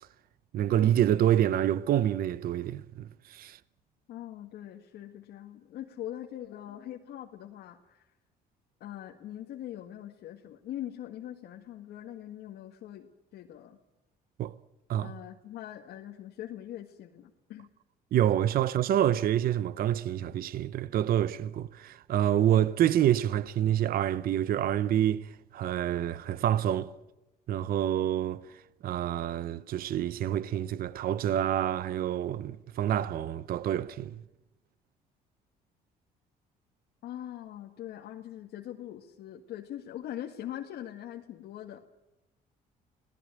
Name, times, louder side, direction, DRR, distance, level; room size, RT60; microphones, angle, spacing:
voice 1, 0.5-3.6 14.4-14.6 14.9-15.1 18.1-26.9 27.5-28.4 28.8-34.2, right 11 dB, 60° right, 0.9 m, -27 dB
voice 2, 4.1-8.0 8.8-13.8 15.0-17.7 37.0-41.8, left 12 dB, 75° left, 1.8 m, -42 dB
30.0 x 18.0 x 9.1 m
cardioid pair, 110°, 17 cm